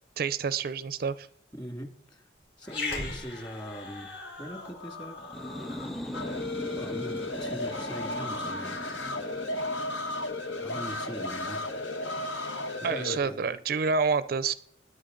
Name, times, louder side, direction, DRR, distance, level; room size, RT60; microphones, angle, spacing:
voice 1, 0.2-1.3 12.8-14.5, right 5 dB, 55° right, 15 dB, 0.4 m, -28 dB
voice 2, 1.5-2.2 2.6-4.1 4.4-5.2 6.7-8.8 10.6-11.7 12.8-13.6, equal, 25° left, 4 dB, 2.1 m, -41 dB
Growling, 2.6-7.3, left 3 dB, 60° left, 4.4 m, -40 dB
sound 1, 5.2-12.7, equal, ahead, 0.5 m, -41 dB
sound 2, 6.1-13.2, left 2 dB, 85° left, 1.4 m, -34 dB
21.0 x 9.6 x 3.8 m, 0.66 s
head